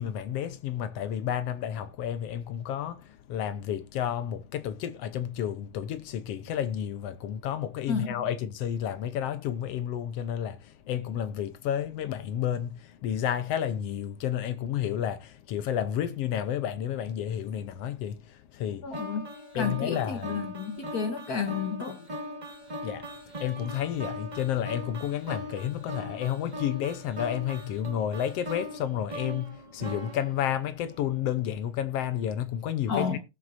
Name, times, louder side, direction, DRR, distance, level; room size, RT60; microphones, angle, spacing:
voice 1, 0.0-18.9 19.5-20.3 22.8-23.1 23.4-33.2, left 10 dB, 70° left, 1.6 m, -31 dB
voice 2, 18.8-19.3 19.5-22.1 32.9-33.2, left 6 dB, 85° left, 0.8 m, -31 dB
sound 1, 18.9-31.1, equal, 20° right, 1.1 m, -40 dB
18.0 x 7.7 x 2.6 m
omnidirectional pair, 3.4 m